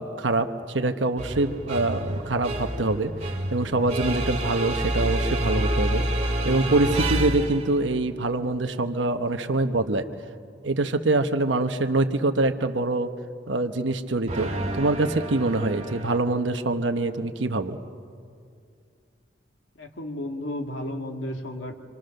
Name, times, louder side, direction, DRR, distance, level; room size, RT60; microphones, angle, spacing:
voice 1, 0.0-3.1 3.5-6.0 6.4-10.0 10.6-13.1 13.5-17.8, right 2 dB, 80° right, 7 dB, 1.1 m, -25 dB
sound 1, 1.2-7.8 14.3-16.2, right 1 dB, 35° right, 2.2 m, -28 dB
voice 2, 19.8-21.7, left 1 dB, 85° left, 3 dB, 2.3 m, -33 dB
27.0 x 26.0 x 6.6 m, 2.3 s
head